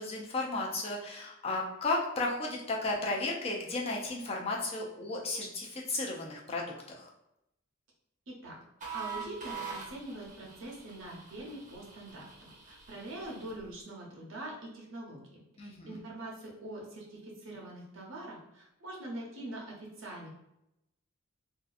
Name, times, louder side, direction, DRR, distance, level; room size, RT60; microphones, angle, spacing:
voice 1, 0.0-7.1 15.6-16.0, left 2 dB, 30° left, -2 dB, 0.5 m, -34 dB
voice 2, 8.3-8.6 8.9-20.3, right 1 dB, 70° right, -2 dB, 0.8 m, -44 dB
sound 1, 8.8-13.6, right 5 dB, 40° right, 0.7 m, -44 dB
2.7 x 2.4 x 2.4 m, 0.85 s
head